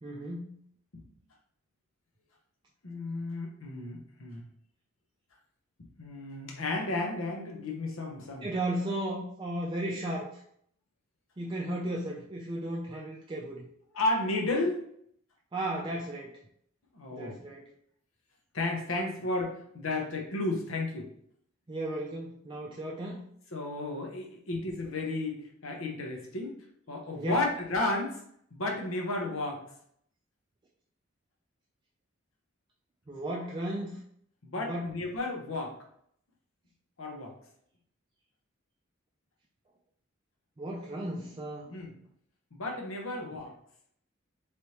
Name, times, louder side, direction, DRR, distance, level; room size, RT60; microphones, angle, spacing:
voice 1, 0.0-0.6 8.4-10.4 11.4-13.7 15.5-16.3 17.1-17.6 21.7-23.2 27.1-27.4 33.1-34.0 34.6-34.9 40.6-41.7 43.2-43.3, right 1 dB, 25° right, -3 dB, 0.4 m, -35 dB
voice 2, 2.8-4.4 5.8-8.5 13.9-14.8 16.9-17.4 18.5-21.1 23.5-26.5 26.9-28.2 28.5-29.6 34.4-35.7 37.0-37.3 41.7-41.9 42.5-43.5, left 2 dB, 85° left, 1 dB, 0.9 m, -33 dB
3.3 x 3.1 x 2.8 m, 0.67 s
head